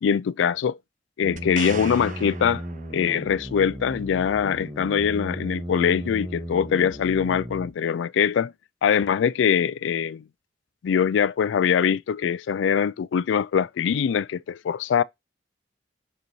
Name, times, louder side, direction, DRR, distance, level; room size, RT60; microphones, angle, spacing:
voice 1, 0.0-0.8 1.2-2.6 2.9-8.5 8.8-10.2 10.8-15.0, left 7 dB, 80° left, 0.3 m, -23 dB
sound 1, 1.2-7.7, equal, ahead, 1.6 m, -35 dB
sound 2, 1.4-3.3 7.0-7.1, right 7 dB, 40° right, 0.4 m, -39 dB
7.9 x 4.0 x 3.0 m
head